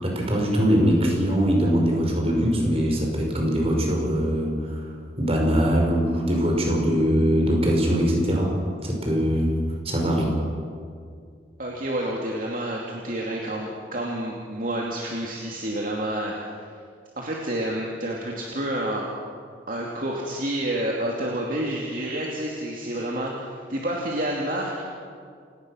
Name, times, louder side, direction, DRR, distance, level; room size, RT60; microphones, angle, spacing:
voice 1, 0.0-4.9 5.2-10.4, equal, 35° right, 0 dB, 5.2 m, -22 dB
voice 2, 11.6-16.4 17.2-19.1 19.7-24.7, right 1 dB, 50° right, -2 dB, 2.7 m, -29 dB
29.0 x 18.0 x 6.4 m, 2.2 s
head